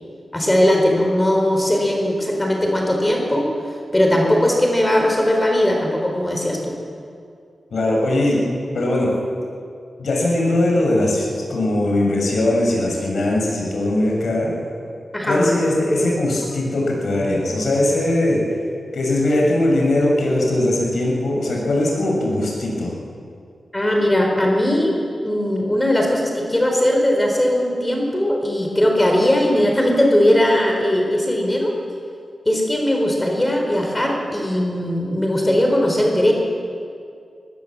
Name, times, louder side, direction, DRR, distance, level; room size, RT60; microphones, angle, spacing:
voice 1, 0.3-3.5 3.9-6.8 15.1-15.6 23.7-25.0 25.2-31.7 32.5-36.3, left 1 dB, 20° left, 1 dB, 4.4 m, -19 dB
voice 2, 7.7-8.4 8.7-9.1 10.0-14.5 15.2-18.4 18.9-22.9, left 1 dB, 75° left, -2 dB, 6.3 m, -20 dB
21.0 x 18.0 x 7.6 m, 2.4 s
cardioid pair, 55°, 0 cm